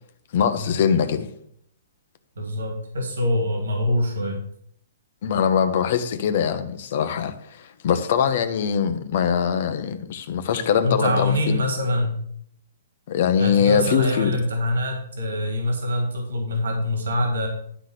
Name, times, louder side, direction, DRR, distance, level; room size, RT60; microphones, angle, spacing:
voice 1, 0.3-1.3 5.2-11.6 13.1-14.3, left 7 dB, 50° left, 9 dB, 0.9 m, -22 dB
voice 2, 2.4-4.4 10.8-12.2 13.4-17.5, left 1 dB, 85° right, 2 dB, 2.7 m, -24 dB
11.5 x 4.2 x 6.6 m, 0.67 s
hypercardioid pair, 160°, 0 cm